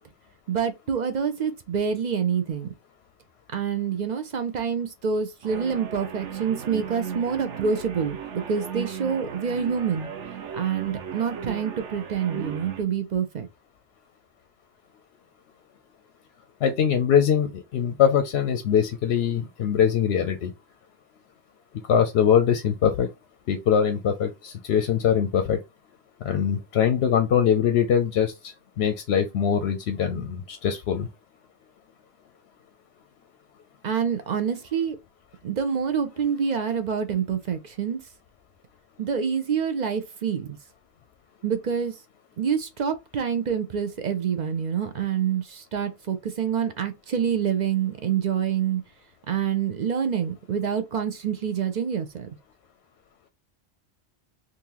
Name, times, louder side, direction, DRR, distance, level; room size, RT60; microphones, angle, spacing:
voice 1, 0.5-2.7 3.5-8.2 8.5-10.1 10.5-13.5 33.8-35.0 35.4-38.0 39.0-40.6 41.4-41.9 42.4-48.8 49.3-52.3, right 7 dB, 50° right, 0.5 m, -26 dB
sound 1, 5.4-12.8, right 8 dB, 70° right, 1.0 m, -36 dB
voice 2, 16.6-20.5 21.9-23.1 23.5-25.6 26.2-31.1, left 8 dB, 65° left, 0.7 m, -22 dB
3.7 x 2.6 x 2.9 m
omnidirectional pair, 1.3 m